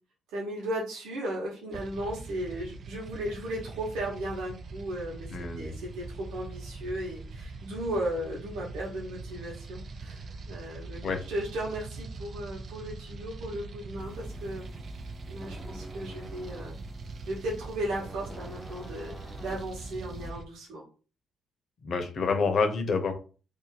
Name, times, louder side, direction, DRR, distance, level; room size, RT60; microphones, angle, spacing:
voice 1, 0.3-5.3 5.6-11.0 11.3-14.6 15.3-16.8 17.2-19.1 19.4-20.8, right 1 dB, 85° right, -4 dB, 1.3 m, -35 dB
sound 1, 1.7-20.4, right 3 dB, 50° right, 0.5 m, -42 dB
voice 2, 5.3-5.7 11.0-11.2 21.8-23.1, left 4 dB, 55° left, 6 dB, 0.8 m, -27 dB
sound 2, 14.0-20.3, equal, 5° left, 0.7 m, -46 dB
2.9 x 2.5 x 4.0 m, 0.36 s
cardioid pair, 90°, 0 cm